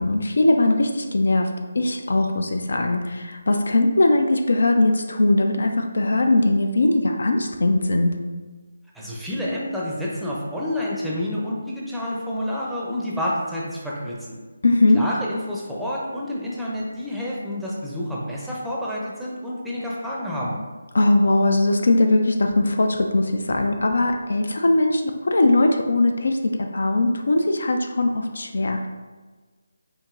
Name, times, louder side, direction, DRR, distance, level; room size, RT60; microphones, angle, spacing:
voice 1, 0.0-1.5 1.7-8.1 14.6-15.0 20.9-28.9, left 2 dB, 70° left, 5 dB, 0.4 m, -20 dB
voice 2, 8.9-14.4 14.9-20.6, left 1 dB, ahead, -6 dB, 0.5 m, -29 dB
4.6 x 2.6 x 2.4 m, 1.3 s
figure-of-eight pair, 155°, 0 cm